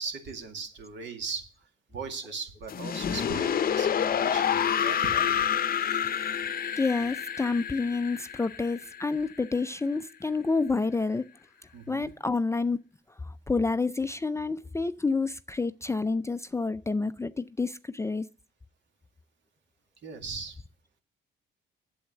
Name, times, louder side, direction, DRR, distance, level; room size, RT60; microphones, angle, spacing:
voice 1, 0.0-1.5 1.9-5.5 11.7-12.1 20.0-20.6, right 4 dB, 65° right, 2.2 m, -38 dB
sound 1, 2.7-9.6, left 8 dB, 45° left, 0.7 m, -28 dB
voice 2, 6.8-11.3 11.9-12.8 13.2-18.2, left 3 dB, 15° left, 0.4 m, -29 dB
8.7 x 7.9 x 6.5 m
cardioid pair, 90°, 20 cm